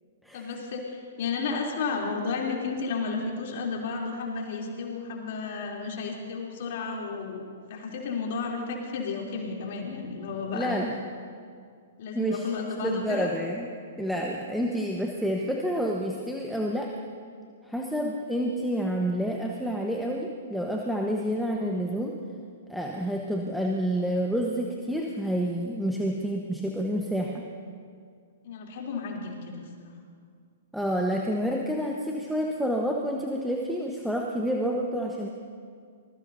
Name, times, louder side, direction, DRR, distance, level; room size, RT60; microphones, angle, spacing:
voice 1, 0.3-10.8 12.0-13.3 23.0-23.1 28.4-29.9, left 4 dB, 55° left, -1 dB, 3.2 m, -32 dB
voice 2, 10.5-10.9 12.1-12.5 12.8-13.7 14.0-16.9 17.6-22.2 22.7-27.4 30.7-35.3, equal, ahead, -1 dB, 1.2 m, -29 dB
24.5 x 20.0 x 2.7 m, 2.1 s
figure-of-eight pair, 115°, 0 cm